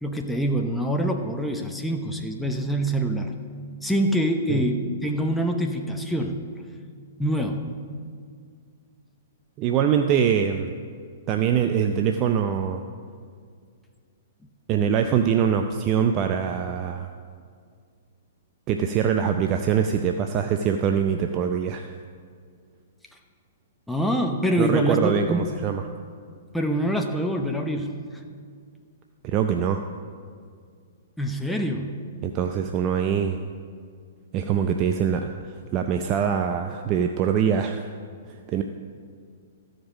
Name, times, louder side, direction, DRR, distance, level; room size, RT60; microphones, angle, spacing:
voice 1, 0.0-3.3 3.8-6.4 7.2-7.7 23.9-25.4 26.5-28.0 31.2-31.9, equal, 5° left, 2 dB, 0.8 m, -25 dB
voice 2, 9.6-10.7 11.3-12.8 14.7-17.1 18.7-22.0 24.6-25.9 29.2-29.8 32.2-33.4 34.3-37.9 38.3-38.6, right 8 dB, 35° right, 5 dB, 0.5 m, -23 dB
14.0 x 5.1 x 6.3 m, 2.1 s
hypercardioid pair, 120°, 0 cm